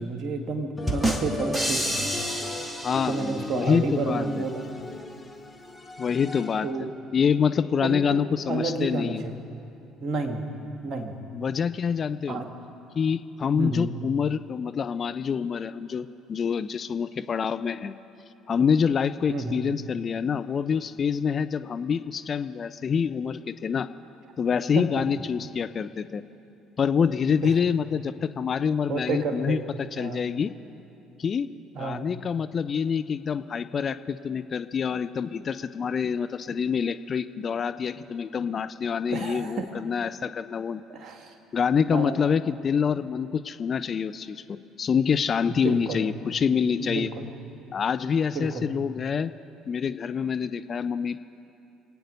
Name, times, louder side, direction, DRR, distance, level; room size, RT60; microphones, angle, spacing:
voice 1, 0.0-2.1 3.1-4.7 6.6-6.9 7.8-8.2 8.5-9.4 10.0-10.5 10.8-11.2 12.3-12.5 13.6-13.9 19.3-19.6 24.8-25.0 27.4-27.5 28.9-29.6 30.0-30.3 31.7-32.0 39.1-39.7 40.9-41.4 41.9-42.2 45.5-46.0 46.8-47.3 48.3-48.7, right 3 dB, 45° right, 5 dB, 2.0 m, -30 dB
sound 1, 0.8-6.8, left 2 dB, 20° left, 1.6 m, -38 dB
sound 2, 0.9-3.7, right 1 dB, 10° right, 2.0 m, -29 dB
voice 2, 2.8-4.2 6.0-6.9 7.1-9.2 11.3-12.4 12.9-17.9 18.5-23.9 24.4-26.2 26.8-29.6 30.0-30.5 31.2-31.5 31.8-40.8 41.5-47.1 47.7-49.3 49.7-51.2, left 6 dB, 40° left, 11 dB, 0.6 m, -26 dB
27.5 x 9.3 x 5.4 m, 2.7 s
figure-of-eight pair, 55°, 0 cm